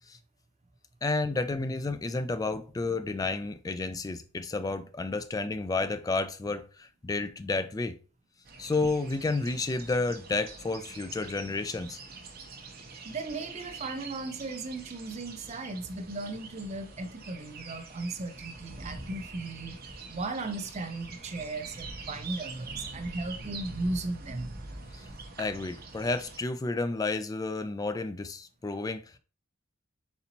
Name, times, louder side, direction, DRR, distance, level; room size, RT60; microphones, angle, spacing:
voice 1, 1.0-8.0 8.6-12.0 25.4-29.0, left 3 dB, 20° left, 0.3 m, -31 dB
sound 1, 8.5-26.4, right 3 dB, 50° right, 0.9 m, -44 dB
voice 2, 12.8-24.5, right 2 dB, 35° right, 0.5 m, -36 dB
4.2 x 4.0 x 2.8 m
head